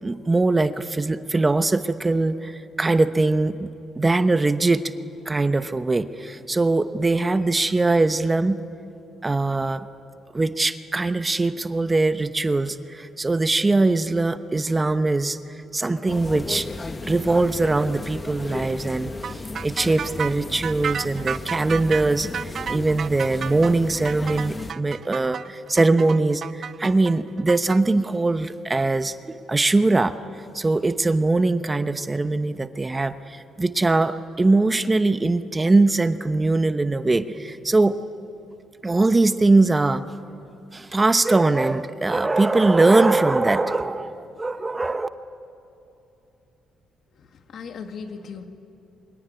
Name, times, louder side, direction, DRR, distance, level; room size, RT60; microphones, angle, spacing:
voice 1, 0.0-3.7 4.0-4.9 5.3-8.6 9.2-9.9 10.3-15.4 15.7-16.7 17.0-30.2 30.5-38.0 38.8-40.0 40.7-45.1, right 2 dB, 20° right, 11 dB, 0.9 m, -21 dB
sound 1, 16.1-24.7, left 3 dB, 25° left, 1.3 m, -35 dB
sound 2, 19.2-27.8, right 7 dB, 55° right, 0.6 m, -32 dB
voice 2, 47.1-48.4, left 5 dB, 65° left, 6 dB, 2.1 m, -38 dB
25.0 x 22.0 x 9.9 m, 2.8 s
cardioid pair, 90°, 0 cm